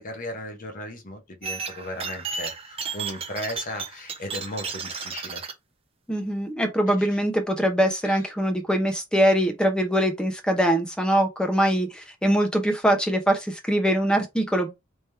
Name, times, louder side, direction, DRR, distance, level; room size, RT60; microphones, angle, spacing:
voice 1, 0.0-5.4 6.9-7.1 8.0-8.2, left 1 dB, 40° left, 1.0 m, -36 dB
sound 1, 1.4-5.5, right 5 dB, 30° right, 0.6 m, -33 dB
voice 2, 6.1-14.7, equal, 5° left, 0.8 m, -23 dB
3.5 x 3.0 x 3.3 m
head